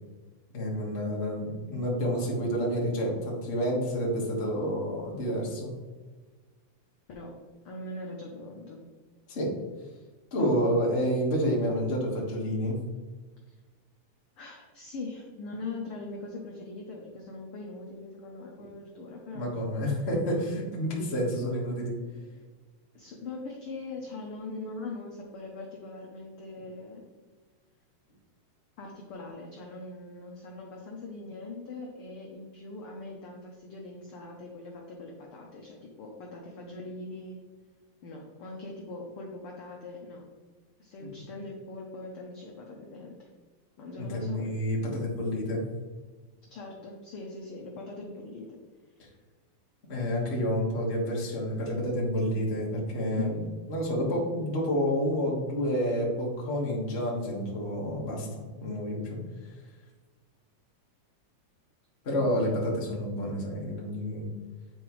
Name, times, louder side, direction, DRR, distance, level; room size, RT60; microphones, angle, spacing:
voice 1, 0.5-5.7 9.3-9.5 10.3-12.8 18.6-18.7 19.3-22.0 41.0-41.1 44.0-45.6 49.0-49.1 49.9-53.4 53.7-59.5 62.0-64.3, equal, 35° left, -3 dB, 1.0 m, -29 dB
voice 2, 7.6-8.8 10.3-10.5 13.5-13.6 14.4-19.5 22.0-22.2 22.9-27.1 28.8-37.4 38.0-40.3 40.8-43.3 43.8-44.5 46.5-48.6 53.1-53.3, left 3 dB, 75° left, -1 dB, 1.3 m, -41 dB
9.1 x 4.4 x 3.1 m, 1.3 s
omnidirectional pair, 3.5 m